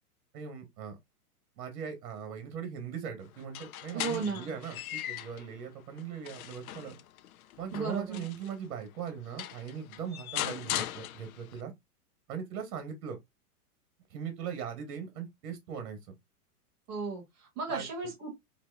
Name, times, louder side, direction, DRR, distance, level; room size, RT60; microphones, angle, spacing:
voice 1, 0.3-1.0 1.6-7.0 7.6-11.7 12.3-13.2 14.1-16.1 17.7-17.9, right 7 dB, 60° right, 1.3 m, -40 dB
sound 1, 3.4-5.5 6.0-8.5 9.1-9.2 9.4-11.6, left 12 dB, 65° left, 0.5 m, -39 dB
voice 2, 3.9-4.5 7.7-8.2 16.9-18.3, right 4 dB, 10° right, 0.4 m, -35 dB
4.0 x 2.7 x 2.3 m
supercardioid pair, 160°, 47 cm